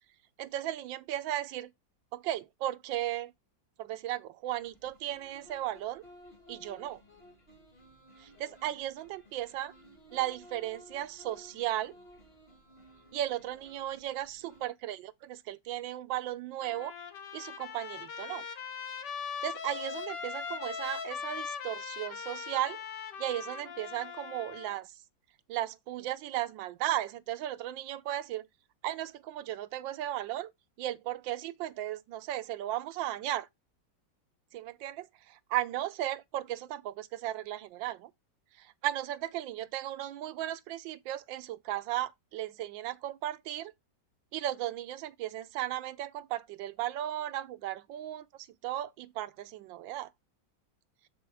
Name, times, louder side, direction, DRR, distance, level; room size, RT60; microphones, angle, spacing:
voice 1, 0.4-1.7 2.1-3.3 3.8-6.0 6.5-7.0 8.2-9.7 10.1-11.9 13.1-16.9 17.3-18.4 19.4-22.8 23.2-24.9 25.5-28.5 28.8-30.5 30.8-33.5 34.5-35.1 35.5-38.1 38.6-43.7 44.3-48.3 48.6-50.1, right 13 dB, 80° right, 1.3 m, -35 dB
sound 1, 4.6-14.7, equal, 30° left, 3.0 m, -56 dB
Trumpet, 16.6-24.8, left 6 dB, 65° left, 1.7 m, -40 dB
6.9 x 6.0 x 3.3 m
omnidirectional pair, 2.1 m